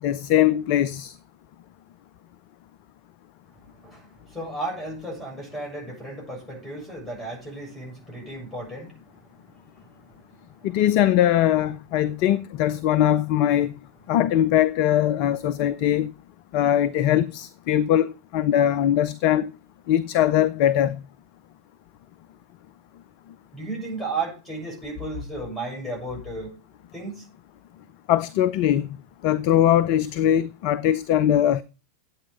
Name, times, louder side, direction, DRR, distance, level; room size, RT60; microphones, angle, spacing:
voice 1, 0.0-1.2 10.6-13.7 14.1-16.1 16.5-19.5 19.9-21.0 28.1-28.9 29.2-31.6, left 11 dB, 45° left, 0.5 m, -21 dB
voice 2, 3.8-10.7 23.5-26.5 26.9-27.3, right 2 dB, 10° left, 7.3 m, -35 dB
11.5 x 8.5 x 4.6 m
figure-of-eight pair, 90°, 0 cm